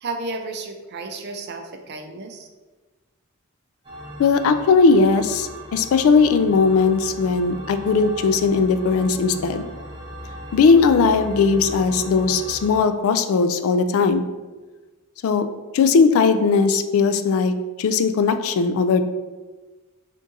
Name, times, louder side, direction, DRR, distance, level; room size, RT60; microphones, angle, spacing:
voice 1, 0.0-2.5, right 3 dB, 50° right, 5 dB, 0.4 m, -32 dB
sound 1, 3.8-12.8, equal, 25° right, 0.8 m, -38 dB
voice 2, 4.2-9.7 10.5-14.2 15.2-15.5 15.7-17.5 17.8-19.0, left 4 dB, 70° left, 11 dB, 0.3 m, -18 dB
3.6 x 2.6 x 3.8 m, 1.3 s
head